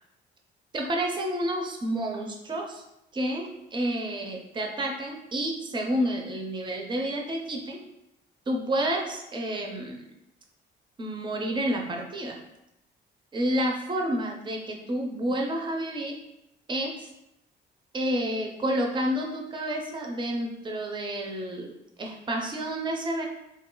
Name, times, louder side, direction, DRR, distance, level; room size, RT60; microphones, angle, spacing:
voice 1, 0.7-2.8 3.1-7.8 8.5-10.0 11.0-12.4 13.3-16.2 16.7-17.1 17.9-23.3, right 1 dB, 25° right, 1 dB, 0.5 m, -30 dB
2.8 x 2.3 x 3.7 m, 0.88 s
cardioid pair, 90°, 20 cm